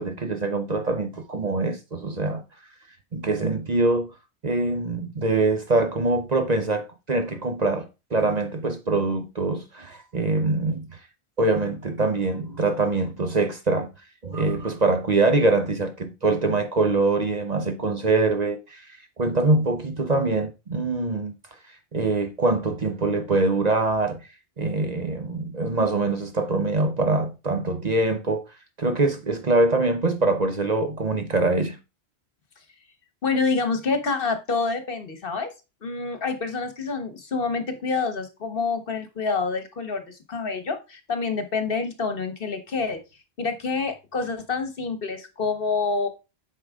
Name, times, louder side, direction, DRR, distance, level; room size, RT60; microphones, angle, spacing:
voice 1, 0.0-2.4 3.1-4.1 4.4-11.0 11.4-13.9 14.2-18.9 19.2-21.3 21.9-24.2 24.6-28.5 28.8-31.8, right 3 dB, 40° right, 0.9 m, -24 dB
voice 2, 33.2-35.5 35.8-43.0 43.4-46.1, left 4 dB, 55° left, 1.3 m, -27 dB
8.6 x 5.6 x 3.6 m
omnidirectional pair, 1.1 m